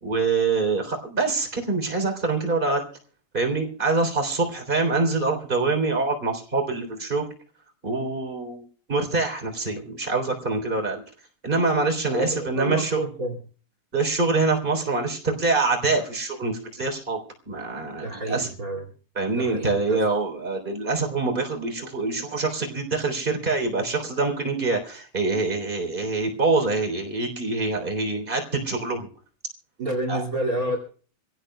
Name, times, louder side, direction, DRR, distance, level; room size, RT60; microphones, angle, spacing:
voice 1, 0.0-2.8 3.3-7.3 7.8-8.6 8.9-11.0 11.4-13.0 13.9-17.2 17.4-18.5 19.1-29.1 30.1-30.2, right 3 dB, 15° right, 3 dB, 2.8 m, -25 dB
voice 2, 12.1-13.4 18.0-18.8 19.3-20.0 29.8-30.8, right 1 dB, 35° right, 3 dB, 1.4 m, -29 dB
26.5 x 16.5 x 2.3 m, 0.43 s
omnidirectional pair, 5.4 m